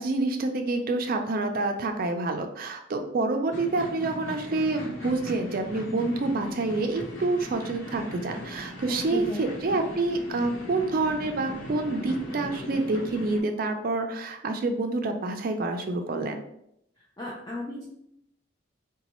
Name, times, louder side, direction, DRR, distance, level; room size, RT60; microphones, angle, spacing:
voice 1, 0.0-16.4, right 2 dB, 50° right, 5 dB, 0.4 m, -28 dB
sound 1, 3.5-13.4, equal, 85° left, 1.0 m, -39 dB
voice 2, 8.9-9.7 17.2-17.8, left 2 dB, 20° left, -5 dB, 0.5 m, -35 dB
4.0 x 2.2 x 3.0 m, 0.74 s
head